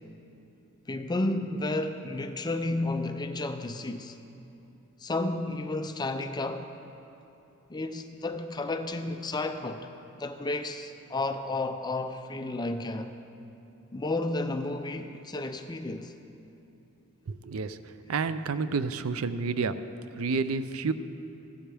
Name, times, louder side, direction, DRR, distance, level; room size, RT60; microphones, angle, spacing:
voice 1, 0.9-4.2 5.0-6.7 7.7-9.9 10.2-13.1 13.9-16.1, left 2 dB, 20° left, 0.5 m, -32 dB
voice 2, 17.3-17.8 18.0-19.7 20.2-20.9, right 4 dB, 75° right, 0.5 m, -29 dB
16.0 x 12.0 x 3.5 m
head